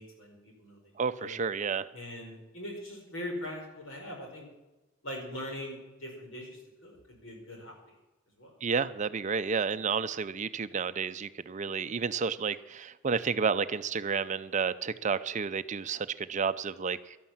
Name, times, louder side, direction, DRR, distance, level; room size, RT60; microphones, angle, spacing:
voice 1, 0.0-0.9 1.2-1.4 1.9-4.5 5.0-7.9 8.4-8.5, left 1 dB, 85° left, 1 dB, 5.0 m, -41 dB
voice 2, 1.0-1.9 8.6-17.2, right 5 dB, 40° right, 13 dB, 0.5 m, -31 dB
12.0 x 11.5 x 7.3 m, 1.1 s
head